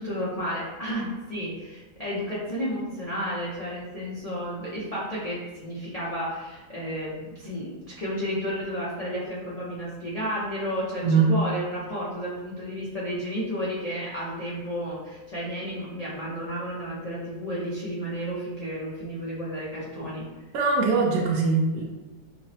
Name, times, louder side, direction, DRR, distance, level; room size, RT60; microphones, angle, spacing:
voice 1, 0.0-20.3, equal, 75° left, -9 dB, 0.3 m, -32 dB
voice 2, 11.0-11.3 20.5-21.8, right 4 dB, 70° right, -1 dB, 1.1 m, -21 dB
5.6 x 2.1 x 2.7 m, 1.1 s
omnidirectional pair, 2.0 m